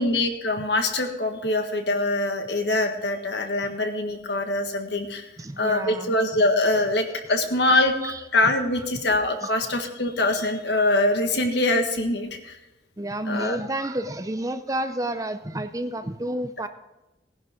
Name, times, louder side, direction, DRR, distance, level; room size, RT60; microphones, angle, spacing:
voice 1, 0.0-5.3 5.6-7.9 8.3-12.6 13.2-13.6, left 2 dB, 65° left, 5 dB, 1.7 m, -23 dB
voice 2, 5.4-6.1 8.0-8.5 9.4-9.5 13.0-16.7, right 1 dB, 20° right, 9 dB, 0.6 m, -30 dB
18.0 x 11.0 x 3.8 m, 0.99 s
head